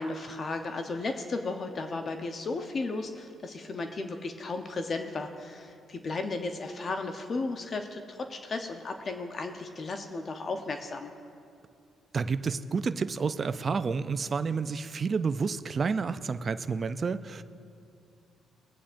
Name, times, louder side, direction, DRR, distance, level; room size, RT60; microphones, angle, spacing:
voice 1, 0.0-11.1, left 3 dB, 45° left, 6 dB, 0.8 m, -34 dB
voice 2, 12.1-17.4, right 5 dB, 40° right, 12 dB, 0.4 m, -30 dB
21.5 x 8.6 x 2.6 m, 2.4 s
cardioid pair, 90°, 0 cm